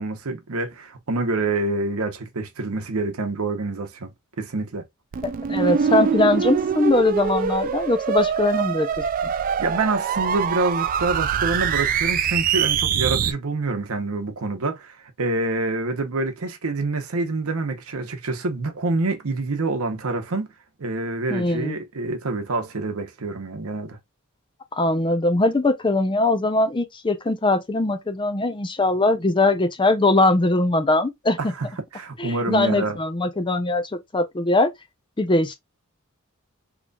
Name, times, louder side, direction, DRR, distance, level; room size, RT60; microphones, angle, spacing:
voice 1, 0.0-4.1 4.4-4.8 9.6-20.5 20.8-24.0 31.4-31.7 31.9-33.0, right 2 dB, 75° right, 0.9 m, -26 dB
sound 1, 5.1-13.3, right 7 dB, 40° right, 0.3 m, -24 dB
voice 2, 5.2-8.9 21.3-21.8 24.8-31.5 32.2-34.7 35.2-35.6, left 2 dB, 20° left, 0.5 m, -21 dB
3.9 x 3.0 x 2.3 m
head